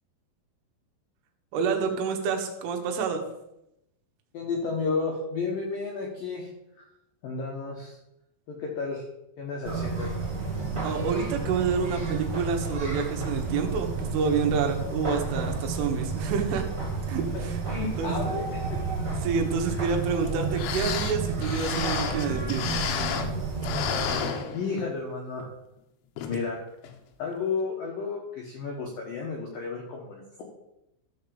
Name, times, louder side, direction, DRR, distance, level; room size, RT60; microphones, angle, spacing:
voice 1, 1.5-3.2 10.8-16.6 17.1-17.6 18.0-18.1 19.2-22.8, right 5 dB, 75° right, 3 dB, 3.6 m, -28 dB
voice 2, 4.3-6.5 6.8-6.9 7.2-8.0 8.5-9.0 9.4-10.1 17.3-18.8 19.7-19.8 24.5-25.5 26.3-26.6 27.2-30.4, left 4 dB, 75° left, 0 dB, 2.1 m, -32 dB
sound 1, 9.6-24.2, right 4 dB, 50° right, 0.9 m, -31 dB
sound 2, 20.3-20.4 20.5-23.4 23.6-25.0 25.4-25.5 26.2-26.4 26.8-26.9, left 8 dB, 90° left, 3.8 m, -31 dB
14.0 x 4.8 x 6.9 m, 0.86 s
omnidirectional pair, 5.9 m